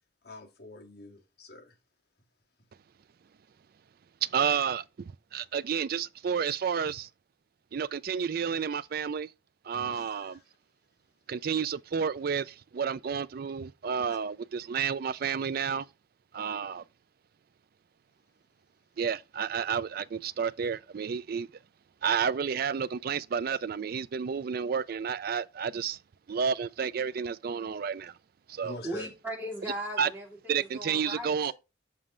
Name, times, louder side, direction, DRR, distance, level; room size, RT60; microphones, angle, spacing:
voice 1, 0.2-1.7 9.7-10.4 28.6-29.1, left 2 dB, 55° left, 2.2 m, -45 dB
voice 2, 4.2-4.8 5.3-7.1 7.7-9.3 9.6-10.4 11.3-15.9 16.3-16.8 19.0-21.5 22.0-26.0 26.3-28.1 28.5-28.8 30.0-30.1 30.5-31.5, right 7 dB, 50° right, 0.3 m, -30 dB
voice 3, 28.8-31.5, right 1 dB, 10° right, 2.7 m, -38 dB
7.1 x 6.2 x 3.7 m
head